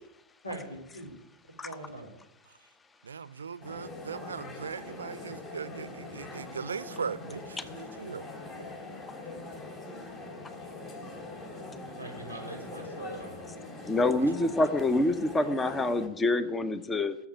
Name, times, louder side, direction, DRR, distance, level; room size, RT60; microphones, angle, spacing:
voice 1, 0.4-1.1 1.6-2.1 8.6-8.7 10.9-11.1 12.0-13.4, right 2 dB, 85° left, 4.1 m, -42 dB
voice 2, 3.0-8.3 14.2-14.3, right 6 dB, 70° right, 0.6 m, -39 dB
sound 1, 3.6-16.1, left 2 dB, 35° left, 3.4 m, -43 dB
voice 3, 13.9-17.2, left 2 dB, 15° left, 0.9 m, -26 dB
18.0 x 7.2 x 8.8 m
figure-of-eight pair, 90°, 0 cm